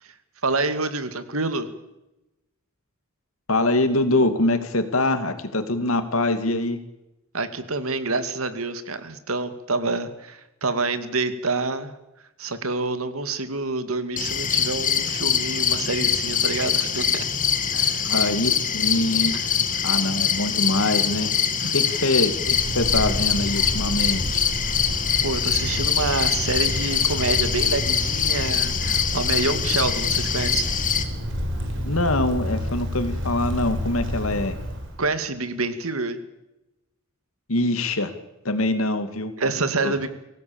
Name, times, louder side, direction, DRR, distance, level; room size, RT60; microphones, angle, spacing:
voice 1, 0.4-1.7 7.3-11.9 12.4-17.1 17.7-18.0 19.3-19.8 21.6-21.7 25.2-30.7 35.0-36.2 39.4-40.1, right 3 dB, 90° right, 10 dB, 2.3 m, -27 dB
voice 2, 3.5-6.8 18.0-19.4 19.8-21.3 21.7-24.4 31.9-34.5 37.5-38.1 38.4-39.3 39.8-40.1, left 2 dB, 80° left, 9 dB, 2.5 m, -24 dB
sound 1, 14.2-31.0, left 7 dB, 40° left, 2.1 m, -24 dB
Wind, 22.2-35.0, equal, 60° right, 5.2 m, -30 dB
24.5 x 17.5 x 7.2 m, 0.94 s
head